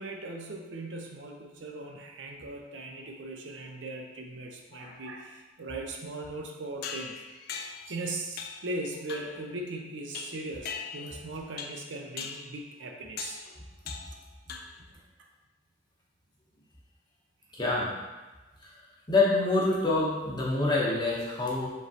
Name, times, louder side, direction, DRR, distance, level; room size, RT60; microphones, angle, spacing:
voice 1, 0.0-7.2 7.9-13.4, right 2 dB, 85° right, 2 dB, 0.6 m, -39 dB
sound 1, 6.8-7.9 8.4-8.7 9.1-9.4 10.1-11.2 11.6-11.9 12.2-12.5 13.2-13.5 13.9-14.2 14.5-14.9, left 6 dB, 55° left, 0.3 m, -40 dB
voice 2, 17.5-17.9 19.1-21.7, left 2 dB, 25° left, -5 dB, 0.9 m, -26 dB
5.0 x 3.1 x 2.8 m, 1.2 s
head